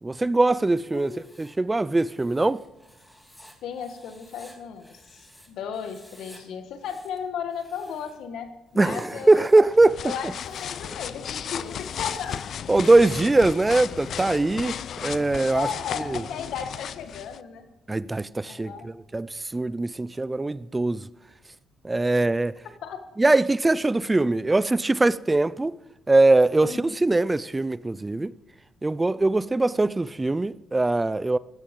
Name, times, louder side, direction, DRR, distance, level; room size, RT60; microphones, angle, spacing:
voice 1, 0.0-2.6 8.8-10.1 12.7-15.7 16.1-16.2 17.9-21.1 21.8-22.5 23.2-25.7 26.1-28.3 28.8-31.4, right 2 dB, 20° right, 0.4 m, -22 dB
Writing, 0.7-5.5 5.7-6.4 6.7-8.2 8.7-9.7 10.2-10.9 11.6-13.6, equal, 5° left, 2.8 m, -55 dB
voice 2, 0.9-1.4 3.6-9.5 10.0-12.5 15.5-17.7 18.4-18.9 22.8-23.0 26.6-26.9, left 7 dB, 80° left, 1.7 m, -35 dB
sound 1, 9.6-17.4, left 8 dB, 60° left, 0.4 m, -35 dB
15.5 x 12.5 x 5.4 m
cardioid pair, 90°, 0 cm